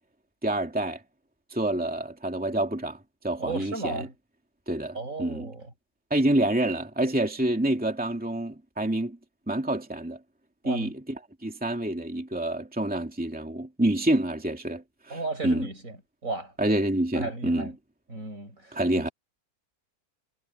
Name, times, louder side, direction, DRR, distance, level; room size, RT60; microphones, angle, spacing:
voice 1, 0.4-1.0 1.5-3.0 3.2-4.1 4.7-5.5 6.1-9.2 9.5-10.2 10.7-11.0 11.4-15.7 16.6-17.7 18.7-19.1, right 1 dB, 5° right, 2.4 m, -27 dB
voice 2, 3.4-4.1 4.9-5.7 10.6-10.9 15.1-16.0 16.2-16.5 17.1-17.7 18.1-18.8, right 3 dB, 60° right, 5.8 m, -34 dB
omnidirectional pair, 1.6 m